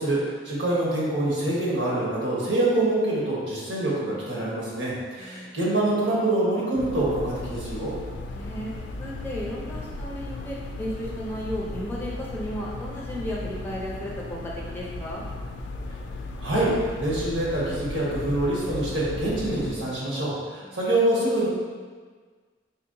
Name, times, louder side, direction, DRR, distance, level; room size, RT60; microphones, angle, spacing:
voice 1, 0.0-7.9 16.4-16.7 17.0-21.5, right 1 dB, 90° right, -6 dB, 1.2 m, -25 dB
voice 2, 5.2-5.5 8.3-15.3 20.6-20.8, equal, 10° left, -5 dB, 0.5 m, -34 dB
sound 1, 6.8-19.7, left 2 dB, 80° left, 0.3 m, -36 dB
4.2 x 2.8 x 2.6 m, 1.5 s
head